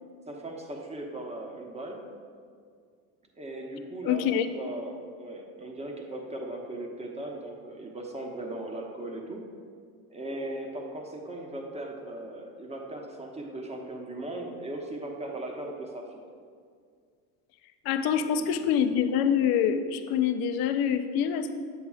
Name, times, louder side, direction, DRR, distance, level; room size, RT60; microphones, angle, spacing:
voice 1, 0.3-2.0 3.4-9.4 10.1-16.1, right 1 dB, 15° right, 1 dB, 1.0 m, -38 dB
voice 2, 4.0-4.5 17.8-21.5, left 8 dB, 55° left, 8 dB, 0.6 m, -25 dB
7.9 x 7.2 x 2.4 m, 2.1 s
hypercardioid pair, 85°, 44 cm